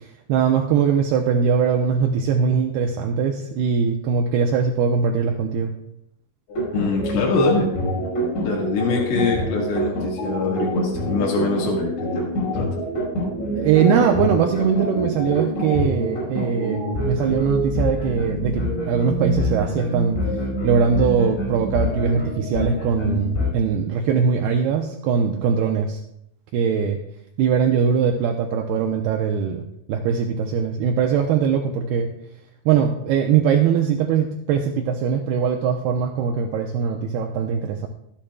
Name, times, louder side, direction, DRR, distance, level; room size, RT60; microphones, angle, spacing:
voice 1, 0.0-5.7 13.5-20.2 20.6-26.0 26.5-27.0 27.4-32.1 32.7-37.9, right 6 dB, 80° right, 2 dB, 2.3 m, -21 dB
sound 1, 6.5-23.5, equal, 65° left, 7.2 m, -26 dB
voice 2, 6.7-7.7 8.4-12.7, left 4 dB, 90° left, -4 dB, 4.4 m, -24 dB
24.0 x 8.8 x 2.3 m, 0.77 s
omnidirectional pair, 5.4 m